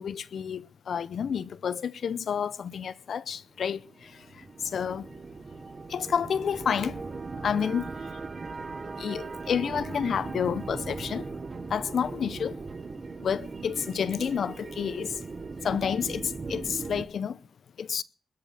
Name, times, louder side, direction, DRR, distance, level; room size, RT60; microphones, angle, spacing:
voice 1, 0.0-4.1 4.6-5.1 5.9-7.0 7.4-7.9 9.0-11.3 11.7-12.6 13.2-15.2 15.6-17.4 17.8-18.0, left 7 dB, 70° left, 0.7 m, -30 dB
sound 1, 3.8-17.0, right 4 dB, 35° right, 1.5 m, -39 dB
21.0 x 7.7 x 7.2 m
wide cardioid pair, 120°, 0 cm